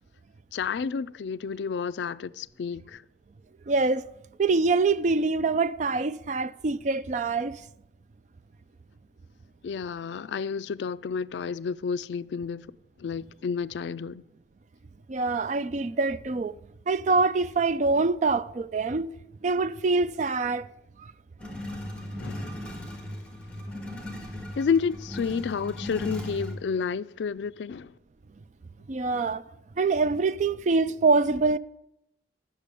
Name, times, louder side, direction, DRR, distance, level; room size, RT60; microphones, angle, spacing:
voice 1, 0.5-3.0 9.6-12.7 13.0-14.2 22.2-22.6 24.5-27.9, left 6 dB, 75° left, 0.3 m, -30 dB
voice 2, 3.7-4.1 4.4-7.6 15.1-16.5 16.9-19.1 19.4-20.7 28.9-29.4 29.8-31.6, right 3 dB, 40° right, 0.4 m, -25 dB
sound 1, 21.4-26.6, left 1 dB, 5° left, 1.6 m, -37 dB
9.8 x 6.7 x 6.9 m
head